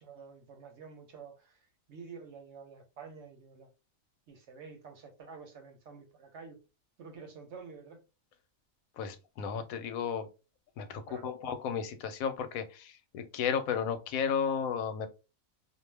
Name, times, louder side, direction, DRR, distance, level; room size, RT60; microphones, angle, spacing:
voice 1, 0.0-3.7 4.3-6.6 7.0-8.0 11.1-11.3, right 5 dB, 65° right, 0.9 m, -49 dB
voice 2, 9.0-10.3 10.8-15.1, left 7 dB, 90° left, 1.0 m, -33 dB
2.4 x 2.2 x 3.2 m
omnidirectional pair, 1.4 m